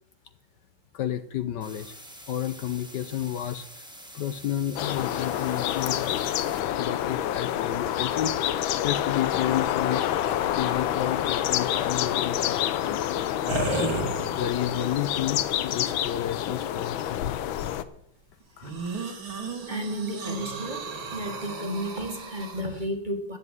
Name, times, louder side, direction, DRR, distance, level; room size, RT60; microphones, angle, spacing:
voice 1, 0.9-2.0 2.3-3.7 4.1-6.4 6.8-17.4 18.6-18.7, left 11 dB, 65° left, 12 dB, 1.2 m, -32 dB
sound 1, 1.6-6.6, equal, ahead, 1.5 m, -46 dB
sound 2, 4.8-17.8, left 11 dB, 85° left, 1.5 m, -28 dB
sound 3, 13.5-14.7 15.4-15.5 18.6-22.6, right 3 dB, 85° right, 2.9 m, -33 dB
voice 2, 19.7-23.4, equal, 25° right, 5 dB, 1.5 m, -33 dB
13.5 x 7.9 x 9.0 m, 0.77 s
omnidirectional pair, 2.1 m